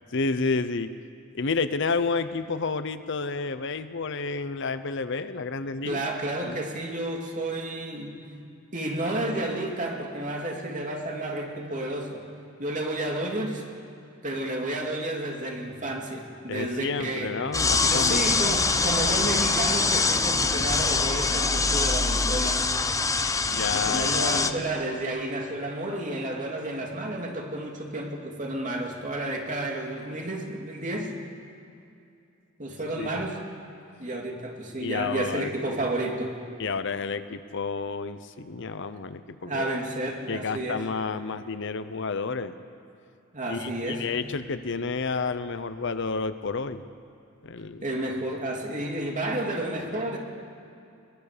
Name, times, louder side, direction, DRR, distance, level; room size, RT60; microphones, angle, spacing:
voice 1, 0.1-0.9 1.3-6.0 6.4-6.5 16.5-18.2 23.4-24.7 33.0-33.2 34.8-35.5 36.6-39.8 40.3-42.6 43.5-46.8 47.4-47.9, left 4 dB, 60° left, 12 dB, 0.8 m, -30 dB
voice 2, 5.8-8.2 8.7-12.3 12.6-13.6 14.2-17.4 17.8-22.6 23.7-31.1 32.6-33.4 34.0-36.4 39.4-40.8 43.3-44.1 47.8-50.2, right 1 dB, 40° right, 1 dB, 2.6 m, -31 dB
sound 1, 17.5-24.5, left 4 dB, 15° left, 0.7 m, -24 dB
22.5 x 20.0 x 6.8 m, 2.6 s
head